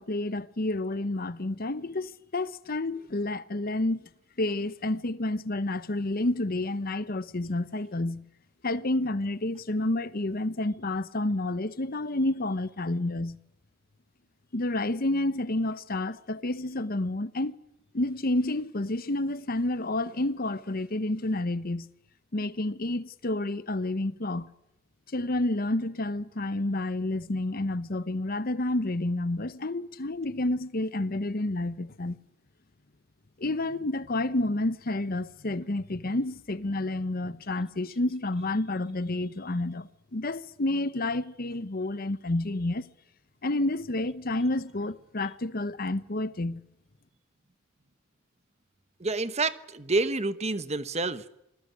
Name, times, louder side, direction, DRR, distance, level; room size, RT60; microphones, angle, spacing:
voice 1, 0.0-4.0 4.4-8.3 8.6-13.4 14.5-17.6 17.9-21.9 22.3-24.5 25.1-32.2 33.4-42.9 43.4-46.6, left 2 dB, 45° left, 0.9 m, -29 dB
voice 2, 49.0-51.3, right 3 dB, 30° right, 1.1 m, -28 dB
27.5 x 20.0 x 9.7 m
head